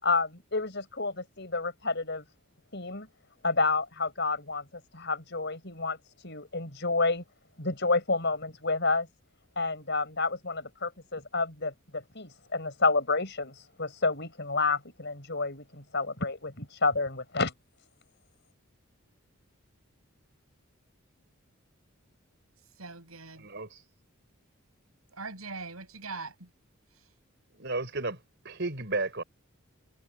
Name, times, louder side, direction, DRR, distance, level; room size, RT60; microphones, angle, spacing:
voice 1, 0.0-2.2 2.7-3.1 3.4-4.6 4.9-6.0 6.2-7.2 7.6-9.1 9.6-17.5, left 3 dB, 55° left, 6.0 m, -29 dB
voice 2, 22.8-23.5 25.1-26.5 26.9-27.1, right 4 dB, 85° right, 7.4 m, -41 dB
voice 3, 23.4-23.8 27.6-28.2 28.4-29.2, right 3 dB, 55° right, 4.5 m, -33 dB
head